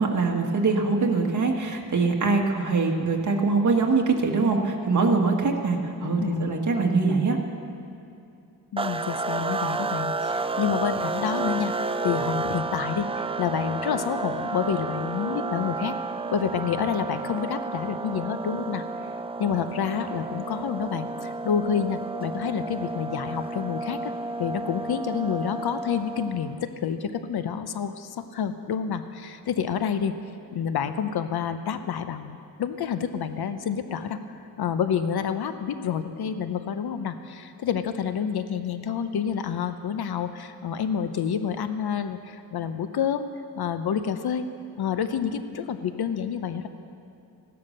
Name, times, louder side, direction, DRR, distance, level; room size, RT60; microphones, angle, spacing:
voice 1, 0.0-7.4, right 4 dB, 50° right, 1 dB, 1.7 m, -23 dB
voice 2, 6.0-6.6 8.7-11.7 12.0-16.0 16.3-18.8 19.4-24.1 24.4-30.1 30.5-43.3 43.6-44.5 44.8-46.7, left 7 dB, 80° left, 10 dB, 0.8 m, -28 dB
sound 1, 8.8-26.6, right 3 dB, 15° right, 0.3 m, -31 dB
16.0 x 12.0 x 6.6 m, 2.6 s
wide cardioid pair, 135°, 38 cm